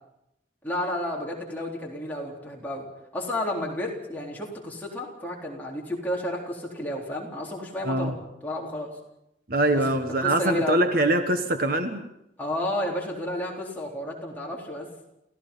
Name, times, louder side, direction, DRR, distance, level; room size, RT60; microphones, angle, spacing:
voice 1, 0.6-2.9 3.1-8.1 8.4-9.0 9.7-9.8 10.2-10.8 12.4-14.9, left 1 dB, 10° left, -3 dB, 3.9 m, -31 dB
voice 2, 7.8-8.1 9.5-12.1, right 1 dB, 50° right, 7 dB, 1.4 m, -23 dB
29.5 x 15.5 x 5.6 m, 0.84 s
head